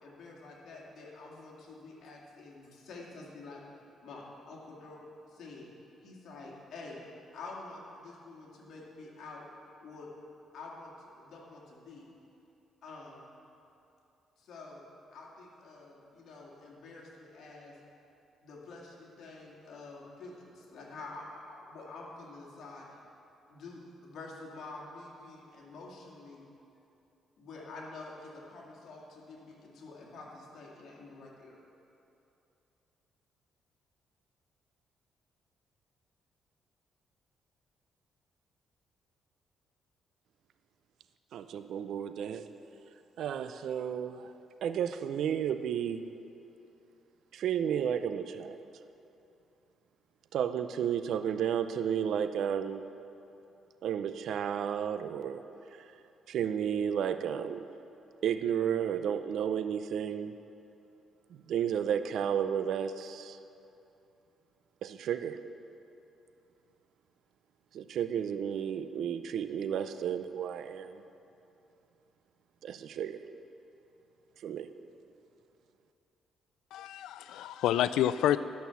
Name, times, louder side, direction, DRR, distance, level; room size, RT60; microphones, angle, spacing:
voice 1, 0.0-5.0 5.3-5.7 6.0-7.0 7.3-9.5 9.8-10.1 10.5-12.1 12.8-13.3 14.4-14.8 15.1-17.8 18.4-23.0 23.5-26.5 27.4-31.6, left 3 dB, 70° left, -3 dB, 2.2 m, -48 dB
voice 2, 41.3-42.5 43.2-44.3 44.6-46.0 47.3-48.6 50.3-52.9 53.8-55.5 55.8-55.9 56.3-57.6 58.2-60.4 61.5-63.4 64.8-65.4 67.7-71.0 72.6-73.2 74.4-74.7, right 8 dB, 70° right, 11 dB, 0.5 m, -32 dB
voice 3, 76.7-78.4, left 11 dB, 85° left, 15 dB, 0.3 m, -28 dB
11.5 x 6.2 x 7.0 m, 2.8 s
cardioid pair, 90°, 0 cm